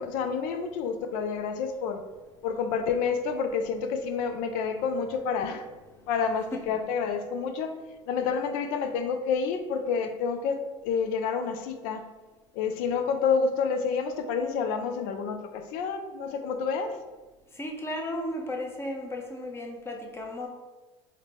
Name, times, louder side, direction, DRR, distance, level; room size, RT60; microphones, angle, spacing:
voice 1, 0.0-2.0 2.4-5.7 6.1-7.7 8.1-12.1 12.5-17.0, left 5 dB, 65° left, 7 dB, 0.4 m, -29 dB
voice 2, 17.5-20.5, left 1 dB, 15° left, 1 dB, 0.6 m, -34 dB
3.7 x 2.1 x 3.3 m, 1.2 s
hypercardioid pair, 85°, 15 cm